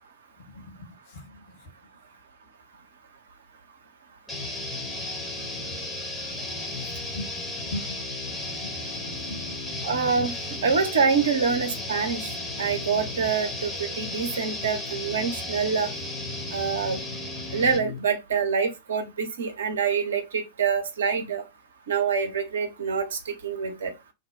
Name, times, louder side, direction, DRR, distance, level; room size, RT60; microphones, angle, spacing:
voice 1, 0.5-0.9 1.1-1.4 7.1-7.3 7.6-8.7 9.0-9.7, left 2 dB, 50° left, 0.9 m, -39 dB
sound 1, 4.3-18.0, left 2 dB, 15° left, 0.8 m, -34 dB
voice 2, 9.8-10.3 10.6-12.3 12.6-15.9 16.5-17.0 17.5-21.4 21.9-23.9, right 6 dB, 65° right, 0.6 m, -26 dB
2.7 x 2.0 x 3.4 m
figure-of-eight pair, 90°, 0 cm